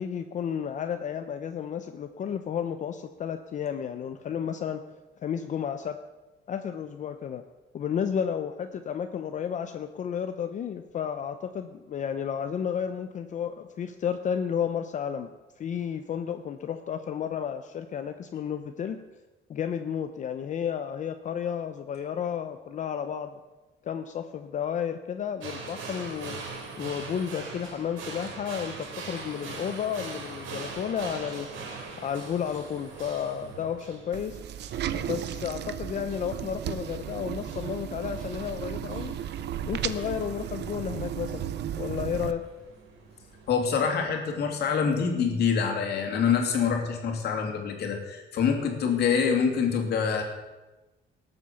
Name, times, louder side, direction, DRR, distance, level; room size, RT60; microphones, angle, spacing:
voice 1, 0.0-4.8 5.2-6.0 6.5-7.4 7.7-15.3 15.6-19.0 19.5-23.4 23.8-26.4 26.8-31.5 32.0-34.4 34.9-39.2 39.7-41.4 41.8-42.4, left 8 dB, 40° left, 8 dB, 0.6 m, -32 dB
sound 1, 25.4-43.7, right 4 dB, 80° right, 3.4 m, -43 dB
sound 2, 34.1-42.3, right 10 dB, 60° right, 0.7 m, -34 dB
voice 2, 43.5-50.2, left 6 dB, 55° left, 2 dB, 2.7 m, -26 dB
18.5 x 8.0 x 7.0 m, 1.1 s
cardioid pair, 180°, 20 cm